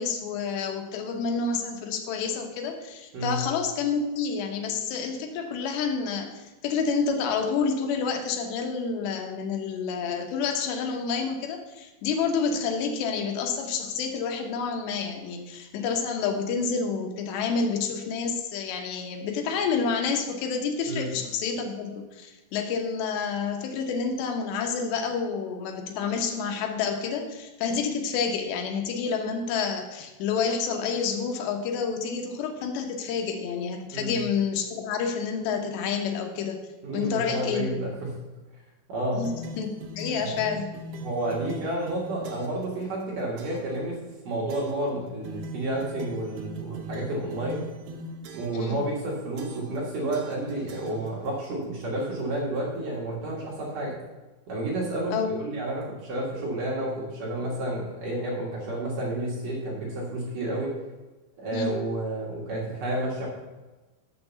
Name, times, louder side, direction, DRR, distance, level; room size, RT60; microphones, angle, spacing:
voice 1, 0.0-36.6 36.9-37.7 39.1-40.7 48.5-48.8 55.1-55.3 61.5-61.7, left 5 dB, 75° left, 3 dB, 3.1 m, -29 dB
voice 2, 36.8-38.1 38.9-39.2 40.2-40.3 41.0-44.0 44.2-47.6 48.3-54.0 54.5-60.7 61.4-63.3, right 1 dB, 55° right, -4 dB, 2.8 m, -30 dB
sound 1, 39.2-42.7 43.4-43.8 44.5-44.9 45.2-48.7 49.4-49.8 50.1-51.5, right 1 dB, 75° right, 2.3 m, -41 dB
7.1 x 6.0 x 6.9 m, 1.2 s
omnidirectional pair, 5.3 m